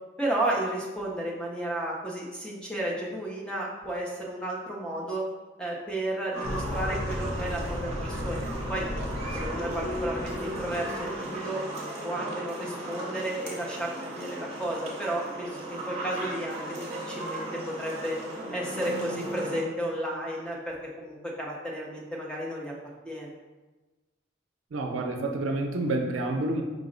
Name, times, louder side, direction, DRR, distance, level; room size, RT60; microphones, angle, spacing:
voice 1, 0.2-5.2 5.6-8.9 9.3-11.6 12.0-18.2 18.5-22.7 23.0-23.3, right 1 dB, 5° left, -3 dB, 0.5 m, -33 dB
sound 1, 6.3-19.6, right 1 dB, 35° right, 0.7 m, -36 dB
sound 2, 6.4-11.3, left 1 dB, 85° left, 0.6 m, -35 dB
voice 2, 24.7-26.6, right 2 dB, 85° right, 3 dB, 0.5 m, -28 dB
4.9 x 2.0 x 3.7 m, 1.2 s
head